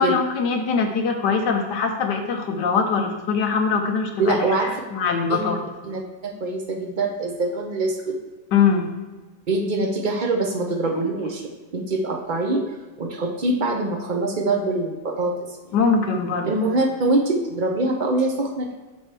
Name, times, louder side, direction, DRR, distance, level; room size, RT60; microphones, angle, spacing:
voice 1, 0.0-5.6 8.5-8.9 10.9-11.1 15.7-16.5, left 5 dB, 70° left, 3 dB, 1.5 m, -22 dB
voice 2, 4.2-4.7 5.3-5.5 5.8-8.2 9.5-11.4 11.7-12.6 13.0-15.7 16.4-18.7, right 2 dB, 75° right, 2 dB, 0.4 m, -24 dB
7.7 x 6.3 x 3.4 m, 1.2 s
omnidirectional pair, 2.0 m